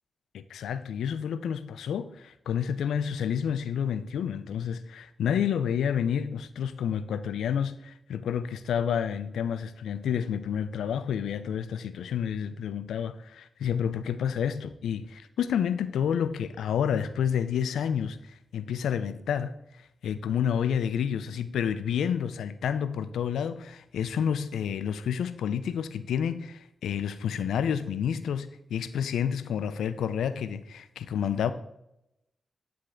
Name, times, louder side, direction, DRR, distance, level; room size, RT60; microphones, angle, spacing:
voice 1, 0.3-19.5 20.0-31.5, left 8 dB, 90° left, 13 dB, 0.3 m, -29 dB
9.9 x 3.3 x 3.7 m, 0.83 s
supercardioid pair, 45°, 0 cm